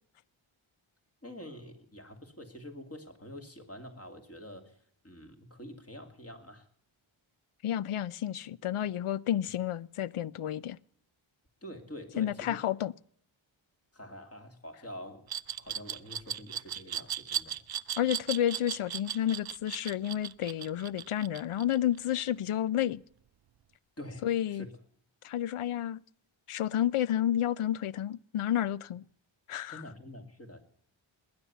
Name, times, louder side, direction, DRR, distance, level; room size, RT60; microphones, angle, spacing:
voice 1, 1.2-4.8 5.0-6.7 11.6-12.6 13.9-15.3 15.6-17.6 24.0-24.7 29.7-30.6, left 1 dB, 30° left, 2.4 m, -46 dB
voice 2, 7.6-10.8 12.2-12.9 18.0-23.0 24.2-24.7 25.2-26.0 26.5-29.0 29.5-29.8, left 11 dB, 80° left, 0.6 m, -30 dB
Glass, 15.3-22.1, right 9 dB, 50° right, 0.5 m, -36 dB
20.0 x 9.8 x 6.9 m
wide cardioid pair, 100°, 49 cm